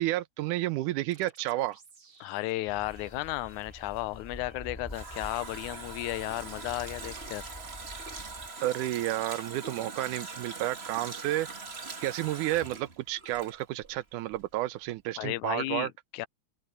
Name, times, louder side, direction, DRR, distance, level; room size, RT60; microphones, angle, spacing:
voice 1, 0.0-1.8 8.6-11.5 12.0-15.9, right 15 dB, 90° right, 2.2 m, -31 dB
sound 1, 1.1-4.6, right 5 dB, 60° right, 5.5 m, -59 dB
voice 2, 2.2-7.5 15.2-16.3, left 18 dB, 85° left, 2.0 m, -34 dB
sound 2, 2.7-8.5, left 1 dB, 10° left, 2.8 m, -47 dB
Water tap faucet, 4.4-14.0 14.3-14.4, right 4 dB, 30° right, 1.2 m, -42 dB
omnidirectional pair, 3.5 m